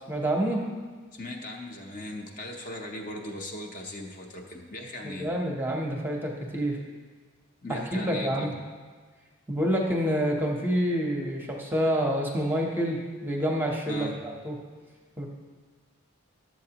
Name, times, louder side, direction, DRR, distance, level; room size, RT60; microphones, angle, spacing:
voice 1, 0.1-0.6 5.0-6.8 7.7-8.5 9.5-14.5 15.2-15.3, equal, 10° right, -1 dB, 0.8 m, -28 dB
voice 2, 1.1-5.3 7.6-8.5 13.9-14.2, left 1 dB, 40° left, 1 dB, 0.7 m, -38 dB
12.0 x 7.4 x 2.9 m, 1.5 s
head